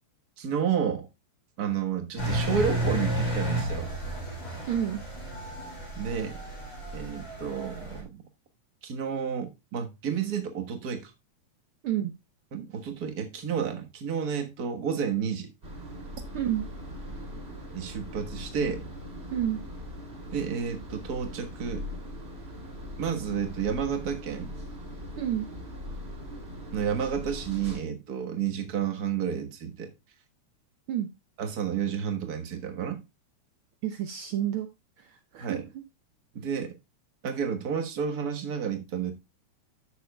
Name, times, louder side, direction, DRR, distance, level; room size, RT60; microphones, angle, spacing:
voice 1, 0.4-1.1 1.6-3.9 6.0-6.4 6.9-8.2 8.8-11.1 12.5-15.5 17.7-18.9 20.3-21.9 23.0-24.6 26.7-29.9 31.4-33.0 35.4-35.6 36.3-36.7 37.2-39.1, right 7 dB, 45° right, 1.3 m, -31 dB
Engine, 2.2-8.0, right 1 dB, 50° left, 4.1 m, -32 dB
voice 2, 4.7-5.0 11.8-12.1 16.3-16.6 19.3-19.6 25.2-25.5 30.9-31.1 33.8-34.7 35.0-35.6, right 11 dB, 75° right, 1.2 m, -29 dB
sound 1, 15.6-27.8, equal, 20° right, 2.8 m, -40 dB
14.0 x 6.9 x 2.3 m
omnidirectional pair, 3.3 m